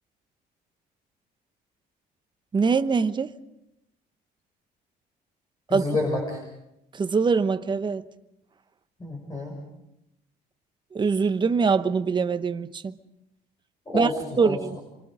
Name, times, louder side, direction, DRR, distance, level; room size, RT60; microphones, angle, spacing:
voice 1, 2.5-3.3 5.7-5.8 6.9-8.0 10.9-12.9 13.9-14.1 14.4-14.8, right 5 dB, 25° right, 1.1 m, -23 dB
voice 2, 5.7-6.4 9.0-9.5 13.9-14.8, left 2 dB, 20° left, 6.6 m, -29 dB
29.0 x 25.0 x 5.0 m
cardioid pair, 110°, 17 cm